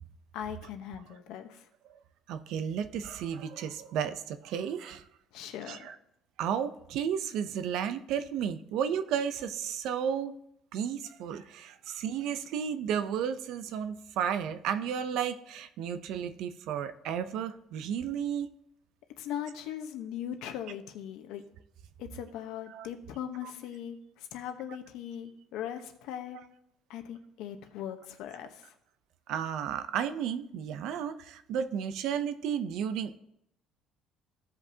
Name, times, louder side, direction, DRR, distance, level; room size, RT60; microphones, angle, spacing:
voice 1, 0.3-1.6 5.3-5.9 19.2-21.4 22.0-26.4 26.9-28.7, left 10 dB, 80° left, 7 dB, 0.9 m, -39 dB
voice 2, 2.3-5.0 5.6-6.0 6.4-10.3 10.7-18.5 22.7-22.9 23.4-23.5 29.3-33.2, right 8 dB, 65° right, 11 dB, 0.5 m, -33 dB
15.0 x 5.3 x 2.8 m, 0.78 s
cardioid pair, 145°, 0 cm